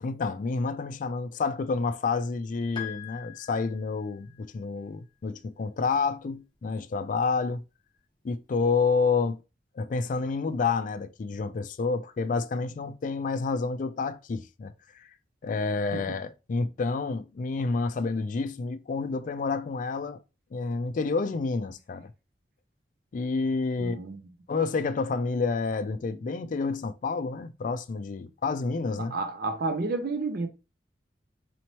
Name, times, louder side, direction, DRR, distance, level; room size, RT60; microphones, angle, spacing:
voice 1, 0.0-7.6 8.2-9.4 9.8-15.1 15.4-20.2 20.5-22.1 23.1-24.0 24.5-29.1, left 4 dB, 45° left, 0.3 m, -29 dB
Piano, 2.8-4.4, left 10 dB, 25° left, 0.8 m, -42 dB
voice 2, 23.8-24.2 28.9-30.5, right 3 dB, 55° right, 0.5 m, -31 dB
4.2 x 3.0 x 2.9 m
head